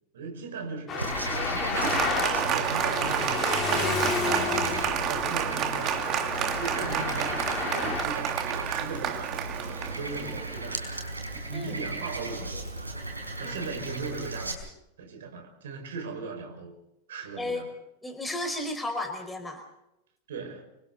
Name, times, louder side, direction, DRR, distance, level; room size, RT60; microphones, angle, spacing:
voice 1, 0.1-4.5 4.8-10.9 11.3-12.6 13.4-14.7 15.0-16.7 17.1-17.7 20.3-20.6, right 4 dB, 60° right, 5.6 m, -38 dB
Traffic noise roadway noise, 0.9-8.0, left 6 dB, 25° left, 3.8 m, -32 dB
Frog, 1.0-14.5, right 2 dB, 80° right, 4.9 m, -36 dB
Applause, 1.7-10.7, right 9 dB, 35° right, 2.2 m, -30 dB
voice 2, 18.0-19.6, left 2 dB, 10° left, 4.9 m, -33 dB
29.0 x 25.5 x 4.1 m
figure-of-eight pair, 90°, 0 cm